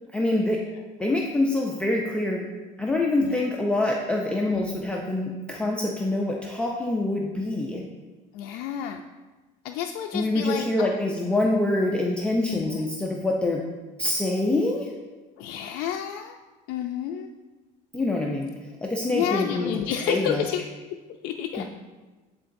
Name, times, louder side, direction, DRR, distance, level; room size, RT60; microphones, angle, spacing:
voice 1, 0.1-0.6 1.0-2.5 2.8-7.8 10.1-13.6 14.0-14.9 17.9-18.5 18.8-19.8 20.1-20.4 21.6-21.7, left 2 dB, 5° left, -2 dB, 0.4 m, -25 dB
voice 2, 4.5-4.8 8.3-9.0 9.6-10.9 12.5-12.8 15.4-16.4 16.7-17.3 19.1-20.6 21.2-21.6, left 9 dB, 70° left, 3 dB, 0.4 m, -30 dB
10.0 x 3.8 x 2.6 m, 1.2 s
cardioid pair, 150°, 17 cm